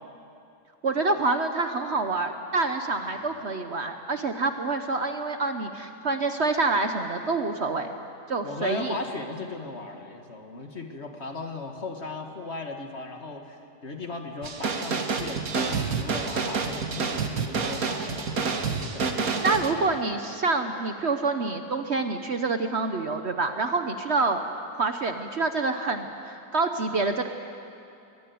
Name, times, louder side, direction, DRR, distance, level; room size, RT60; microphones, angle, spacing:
voice 1, 0.8-7.9 8.3-8.9 19.4-24.4 24.8-27.3, right 3 dB, 50° right, 7 dB, 1.1 m, -27 dB
voice 2, 3.0-3.4 8.4-20.2, left 3 dB, 45° left, 4 dB, 1.9 m, -38 dB
sound 1, 14.4-19.7, right 4 dB, 65° right, 1.8 m, -28 dB
23.0 x 17.0 x 9.4 m, 2.6 s
omnidirectional pair, 1.7 m